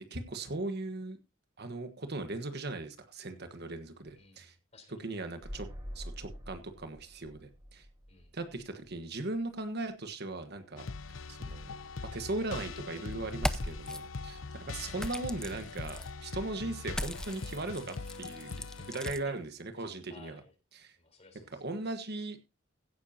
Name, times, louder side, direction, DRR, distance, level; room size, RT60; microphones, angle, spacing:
voice 1, 0.1-1.2 1.6-4.5 5.0-5.7 5.9-7.8 8.3-10.9 11.3-11.7 12.1-18.6 18.9-20.4 20.8-20.9 21.6-22.6, right 2 dB, 55° right, 8 dB, 1.4 m, -38 dB
voice 2, 4.1-5.0 8.1-8.3 18.7-19.3 20.1-20.5 20.9-21.6, left 3 dB, 35° left, 6 dB, 4.0 m, -56 dB
sound 1, 5.4-9.2 9.4-9.5, equal, 20° right, 4.6 m, -46 dB
sound 2, 10.8-19.1, left 4 dB, 75° left, 0.7 m, -42 dB
sound 3, 13.3-14.0 15.0-16.1 16.9-19.2, left 1 dB, 5° left, 0.6 m, -38 dB
16.0 x 10.0 x 2.8 m, 0.26 s
head